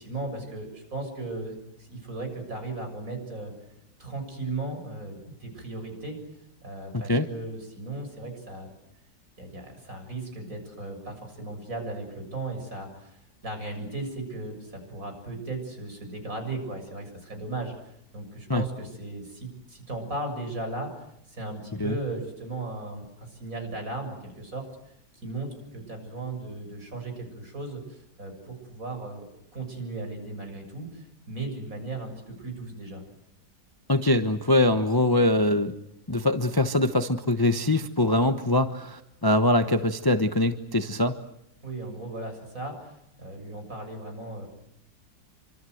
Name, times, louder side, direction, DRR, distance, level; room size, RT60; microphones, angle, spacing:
voice 1, 0.0-3.5 4.0-6.2 6.6-8.7 9.4-20.9 21.3-24.7 25.2-29.2 29.5-33.0 41.6-44.5, right 2 dB, 55° right, 4 dB, 7.6 m, -36 dB
voice 2, 6.9-7.3 18.5-18.6 21.8-22.0 33.9-35.7 36.1-41.2, left 1 dB, 15° left, 8 dB, 1.0 m, -23 dB
28.0 x 25.5 x 8.0 m, 0.80 s
omnidirectional pair, 1.8 m